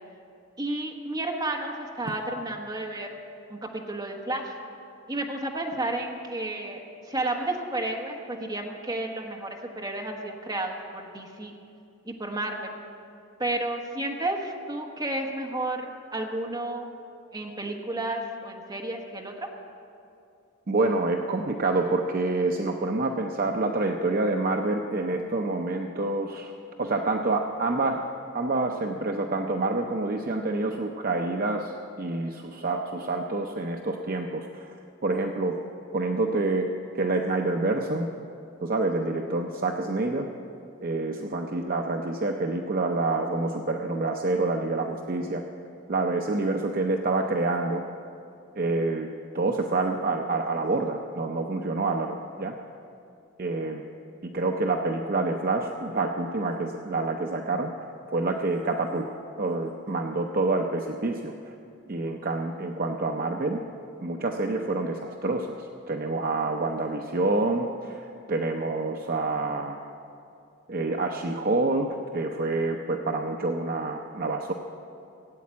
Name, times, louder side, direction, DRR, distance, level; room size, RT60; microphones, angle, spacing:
voice 1, 0.6-3.1 3.5-4.5 5.1-6.8 7.1-11.5 12.0-12.7 13.4-16.9 17.3-19.5, right 2 dB, 20° right, 1 dB, 1.4 m, -32 dB
voice 2, 20.7-26.5 26.8-28.0 28.3-34.8 35.0-35.6 35.9-38.1 38.6-40.3 40.8-45.4 45.9-47.8 48.5-49.1 49.3-52.5 53.4-53.8 54.2-57.7 58.1-59.1 59.4-61.5 61.9-63.6 64.0-69.8 70.7-71.9 72.1-74.5, right 2 dB, 40° right, 3 dB, 0.6 m, -27 dB
17.0 x 8.4 x 8.4 m, 2.6 s
head